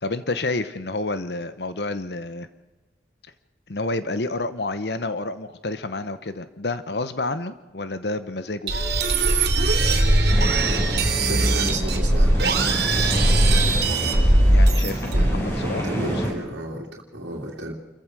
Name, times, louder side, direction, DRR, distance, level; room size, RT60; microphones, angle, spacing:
voice 1, 0.0-2.5 3.7-8.7 14.5-16.3, left 2 dB, 65° left, 12 dB, 1.0 m, -29 dB
sound 1, 8.7-15.5, right 2 dB, 60° right, 3.0 m, -19 dB
sound 2, 10.3-16.3, equal, 15° left, 7.3 m, -29 dB
voice 2, 11.2-12.8 15.1-17.7, right 1 dB, 90° right, -2 dB, 2.7 m, -33 dB
28.5 x 15.0 x 6.2 m, 1.2 s
head